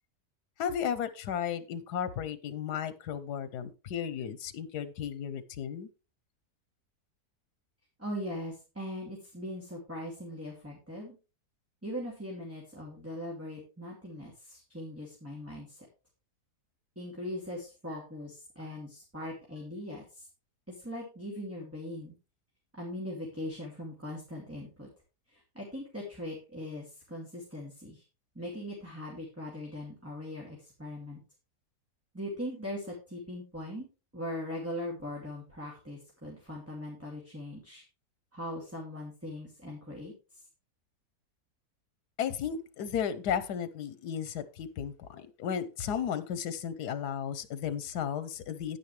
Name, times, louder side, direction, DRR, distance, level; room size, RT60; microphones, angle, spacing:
voice 1, 0.6-5.9 42.2-48.8, left 8 dB, 85° left, 14 dB, 1.4 m, -34 dB
voice 2, 8.0-11.2 11.8-15.9 17.0-20.3 20.7-22.1 22.7-24.9 25.3-28.0 28.3-31.2 32.1-33.9 34.1-37.8 38.3-40.1, left 1 dB, 10° right, -3 dB, 2.5 m, -40 dB
9.7 x 9.5 x 3.3 m, 0.31 s
omnidirectional pair, 1.7 m